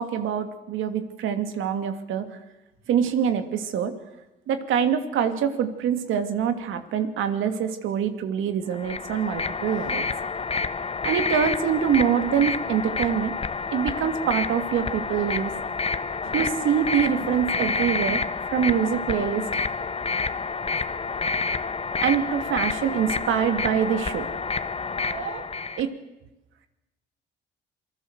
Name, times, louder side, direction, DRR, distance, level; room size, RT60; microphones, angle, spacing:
voice 1, 0.0-2.4 2.9-3.9 4.5-10.1 11.0-13.3 13.7-15.5 16.2-18.2 18.5-19.5 22.0-24.3 25.1-25.5 25.8-25.9, right 8 dB, 85° right, 8 dB, 2.6 m, -25 dB
sound 1, 8.7-25.8, left 4 dB, 30° left, 1.3 m, -29 dB
27.5 x 19.5 x 8.1 m, 0.99 s
cardioid pair, 90°, 20 cm